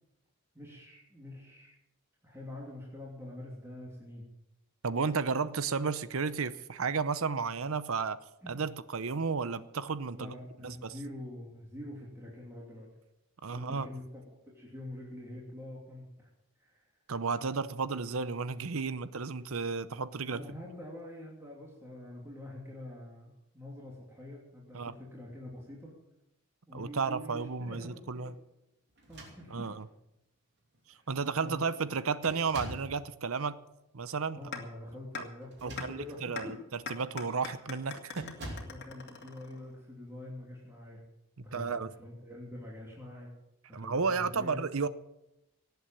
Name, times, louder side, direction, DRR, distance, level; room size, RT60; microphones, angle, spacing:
voice 1, 0.5-1.7 2.2-4.3 8.4-8.6 10.1-12.9 13.5-14.0 14.4-16.3 16.6-16.8 20.2-25.9 26.7-28.3 29.1-29.7 30.9-31.1 31.4-31.7 34.3-36.6 38.6-41.0 41.4-43.3 43.7-44.6, left 1 dB, 10° right, -4 dB, 2.9 m, -46 dB
voice 2, 4.8-8.2 8.5-10.3 10.6-10.9 13.4-13.9 17.1-20.4 24.7-24.9 26.7-28.3 29.5-29.8 31.1-33.6 33.9-34.4 35.2-35.3 35.6-36.6 36.9-38.3 41.5-41.9 43.7-44.9, right 5 dB, 70° right, 15 dB, 0.7 m, -33 dB
sound 1, 29.0-29.9 30.7-30.8 31.2-31.6 32.2-33.0 35.4-36.3 36.8-37.0 38.1-38.8, right 1 dB, 50° right, 2.9 m, -45 dB
sound 2, 34.5-34.6 35.1-35.2 35.8-35.9 36.4-36.5 36.9-39.8, left 5 dB, 50° left, 2.3 m, -40 dB
18.0 x 8.1 x 7.4 m, 0.91 s
head